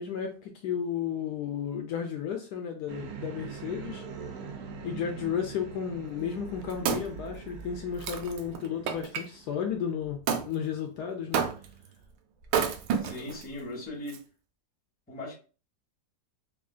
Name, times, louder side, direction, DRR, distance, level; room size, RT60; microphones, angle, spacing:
voice 1, 0.0-4.0 4.8-11.5, left 8 dB, 75° left, 1.1 m, -33 dB
sound 1, 2.9-9.9, right 6 dB, 65° right, 1.0 m, -43 dB
Wood, 6.3-9.3 10.3-10.5 11.3-11.9 12.4-13.4 14.1-14.2, right 7 dB, 85° right, 1.3 m, -30 dB
voice 2, 13.0-14.2 15.1-15.4, left 1 dB, 5° left, 0.9 m, -38 dB
4.8 x 2.5 x 2.3 m
omnidirectional pair, 2.0 m